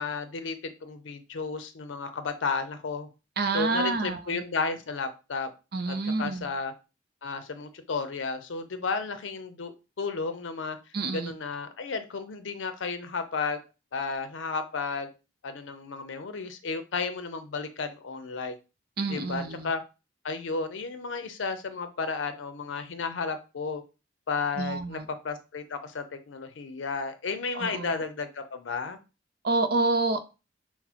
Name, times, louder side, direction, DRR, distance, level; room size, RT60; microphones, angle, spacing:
voice 1, 0.0-3.1 3.5-5.5 5.9-6.7 7.2-10.8 11.1-13.6 13.9-15.1 15.4-18.6 19.1-19.8 20.2-23.8 24.3-25.0 25.2-29.0, left 4 dB, 85° left, 9 dB, 0.5 m, -33 dB
voice 2, 3.4-4.4 5.7-6.5 10.9-11.3 19.0-19.7 24.6-25.1 27.5-28.0 29.4-30.3, right 3 dB, 55° right, 9 dB, 0.5 m, -28 dB
6.0 x 2.1 x 2.8 m, 0.30 s
head